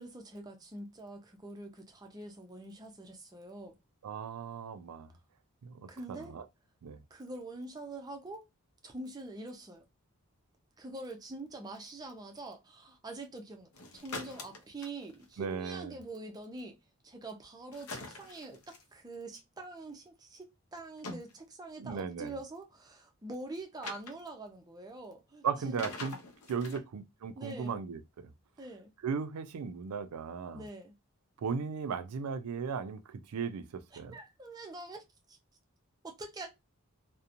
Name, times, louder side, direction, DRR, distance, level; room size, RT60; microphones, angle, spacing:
voice 1, 0.0-3.8 5.9-6.4 7.1-8.5 8.8-9.9 10.8-16.8 17.0-20.5 20.7-25.8 26.7-26.8 27.3-27.8 28.6-28.9 30.5-30.9 33.4-33.5 33.9-35.0 35.3-35.4 36.0-36.5, right 2 dB, 15° right, 0.5 m, -45 dB
voice 2, 4.0-5.1 5.6-6.4 6.8-7.0 15.4-16.0 21.8-22.3 25.4-26.2 26.5-28.0 29.0-30.6 31.4-34.1, right 6 dB, 85° right, 0.4 m, -36 dB
sound 1, 13.7-15.3 17.7-18.8 20.8-21.3 23.8-24.1 25.8-26.8, left 3 dB, 75° left, 0.6 m, -43 dB
2.8 x 2.1 x 2.5 m
head